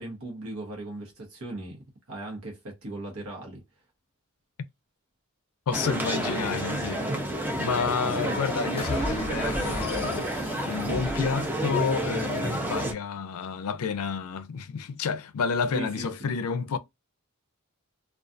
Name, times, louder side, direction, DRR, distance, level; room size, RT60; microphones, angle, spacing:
voice 1, 0.0-3.6 6.0-6.3 6.9-7.5 15.7-16.1, right 2 dB, 70° right, 0.9 m, -38 dB
voice 2, 5.7-7.0 7.6-16.8, left 5 dB, 80° left, 0.4 m, -30 dB
sound 1, 5.7-12.9, right 1 dB, 10° right, 0.5 m, -30 dB
sound 2, 8.8-12.1, left 2 dB, 30° left, 0.7 m, -36 dB
2.4 x 2.3 x 2.5 m
head